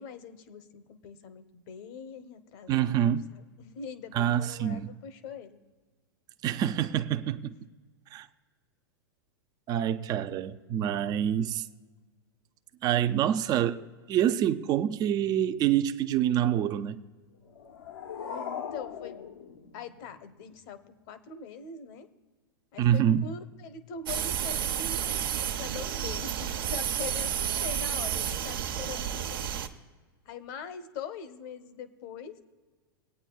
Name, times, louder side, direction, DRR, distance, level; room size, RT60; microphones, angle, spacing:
voice 1, 0.0-5.6 7.4-7.6 18.3-19.3 19.7-22.1 22.7-25.2 25.6-29.5 30.2-32.4, left 6 dB, 50° left, 1.0 m, -43 dB
voice 2, 2.7-3.3 4.1-4.9 6.4-7.5 8.1-8.3 9.7-11.6 12.8-17.0 22.8-23.2, right 10 dB, 35° right, 0.5 m, -26 dB
sound 1, 17.4-20.4, left 7 dB, 80° left, 1.0 m, -40 dB
sound 2, 24.1-29.7, right 9 dB, 70° right, 1.0 m, -31 dB
22.5 x 8.9 x 2.3 m
hypercardioid pair, 105°, 12 cm